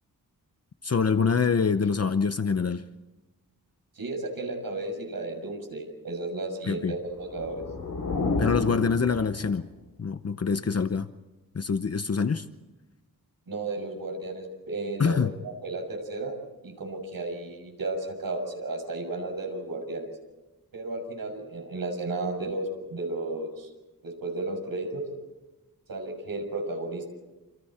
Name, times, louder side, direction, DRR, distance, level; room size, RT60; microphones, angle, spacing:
voice 1, 0.8-2.8 6.7-7.0 8.4-9.7 10.0-11.1 11.5-12.4 15.0-15.3, left 5 dB, 45° left, 0.9 m, -25 dB
voice 2, 4.0-7.6 13.5-16.3 16.6-20.1 20.7-23.7 24.0-25.0 25.9-27.1, right 2 dB, 75° right, 6.6 m, -33 dB
sound 1, 7.1-9.8, left 3 dB, 80° left, 4.1 m, -31 dB
28.5 x 27.5 x 4.4 m
wide cardioid pair, 135°, 35 cm